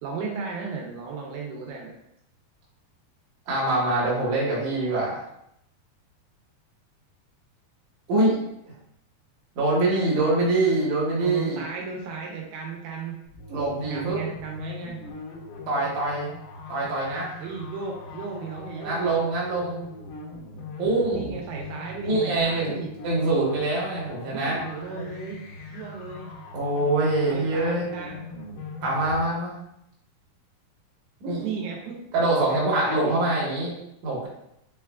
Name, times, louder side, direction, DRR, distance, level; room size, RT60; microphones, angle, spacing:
voice 1, 0.0-1.9 11.2-13.2 13.9-15.0 17.4-19.1 21.1-22.9 24.3-25.4 25.7-26.3 27.3-28.2 31.4-32.0 32.7-33.3, right 5 dB, 85° right, -1 dB, 2.4 m, -35 dB
voice 2, 3.5-5.2 8.1-8.4 9.6-11.6 13.5-14.2 15.7-16.3 16.7-17.3 18.8-19.8 20.8-21.4 22.0-22.8 23.0-24.6 24.9-25.0 26.5-27.9 28.8-29.6 31.2-31.4 32.1-33.7 34.0-34.3, right 2 dB, 65° right, -6 dB, 2.0 m, -24 dB
sound 1, 13.2-29.3, left 3 dB, 80° left, 2.5 m, -40 dB
5.8 x 2.2 x 2.3 m, 0.79 s
omnidirectional pair, 4.4 m